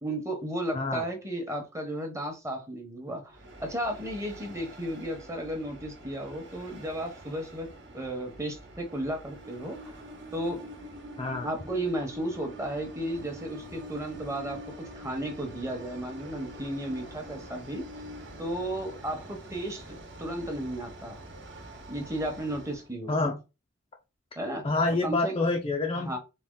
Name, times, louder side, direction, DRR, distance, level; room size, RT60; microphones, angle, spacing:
voice 1, 0.0-7.7 7.9-10.0 10.3-10.6 11.4-17.8 18.4-19.9 20.2-21.2 21.9-23.3 24.4-24.7 25.0-25.3 25.9-26.2, right 1 dB, 15° right, 0.9 m, -34 dB
voice 2, 0.7-1.0 11.2-11.5 23.1-23.4 24.6-26.2, left 3 dB, 25° left, 0.5 m, -27 dB
Train, 3.4-22.8, equal, 55° right, 1.1 m, -45 dB
4.1 x 2.9 x 3.8 m
head